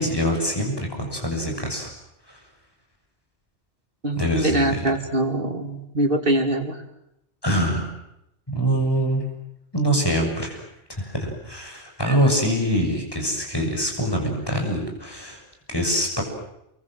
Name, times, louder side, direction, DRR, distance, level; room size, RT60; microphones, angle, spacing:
voice 1, 0.0-1.9 2.3-2.4 4.2-4.8 7.4-7.9 8.5-9.2 9.7-10.6 11.0-15.4 15.7-16.2, equal, 20° left, 2 dB, 7.0 m, -24 dB
voice 2, 4.0-6.8 12.1-12.2, right 1 dB, 50° right, 5 dB, 3.2 m, -23 dB
28.5 x 24.0 x 7.7 m, 0.81 s
omnidirectional pair, 1.2 m